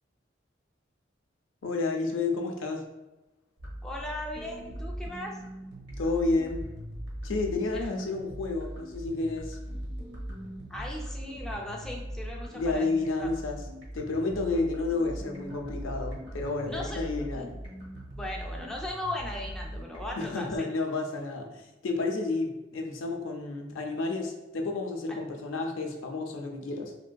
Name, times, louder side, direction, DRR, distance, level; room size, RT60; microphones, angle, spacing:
voice 1, 1.6-2.9 6.0-6.7 7.2-9.6 12.5-13.6 13.9-17.5 20.2-26.9, left 3 dB, 90° left, 3 dB, 0.5 m, -31 dB
sound 1, 3.6-20.6, equal, 60° right, 0.8 m, -40 dB
voice 2, 3.8-5.4 7.7-8.0 10.7-12.9 13.2-13.3 16.7-17.0 17.3-17.5 18.2-20.7, left 1 dB, 5° left, -2 dB, 0.4 m, -37 dB
3.4 x 2.5 x 2.2 m, 1.1 s
head